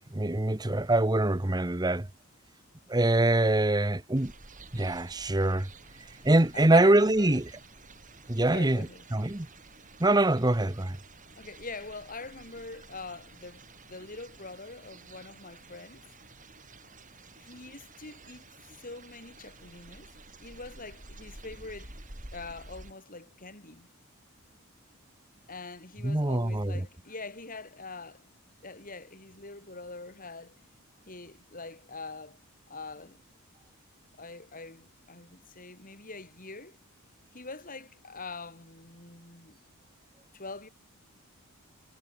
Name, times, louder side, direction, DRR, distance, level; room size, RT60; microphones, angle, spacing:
voice 1, 0.1-2.1 2.9-4.3 4.7-5.7 6.2-7.4 8.3-8.9 9.1-9.5 10.0-11.0 26.0-26.7, right 2 dB, 20° right, 1.0 m, -24 dB
sound 1, 4.1-22.9, right 2 dB, 35° right, 5.2 m, -51 dB
voice 2, 6.5-7.4 8.5-9.1 11.4-16.1 17.3-20.1 20.4-22.0 22.3-23.9 25.5-28.3 28.6-30.7 31.1-32.4 32.7-33.2 34.2-36.8 37.3-39.6 40.3-40.7, left 3 dB, 40° left, 5.0 m, -44 dB
head